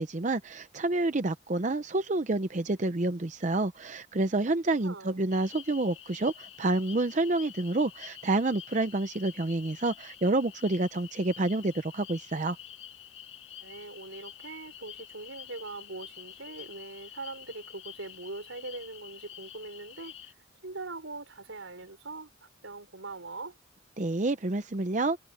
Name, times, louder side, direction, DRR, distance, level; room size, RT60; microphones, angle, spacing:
voice 1, 0.0-12.6 24.0-25.2, right 2 dB, 40° right, 0.7 m, -28 dB
voice 2, 4.8-5.2 13.6-20.3 20.6-23.6, right 3 dB, 90° right, 4.6 m, -42 dB
sound 1, 5.3-20.3, left 11 dB, 75° left, 1.9 m, -48 dB
head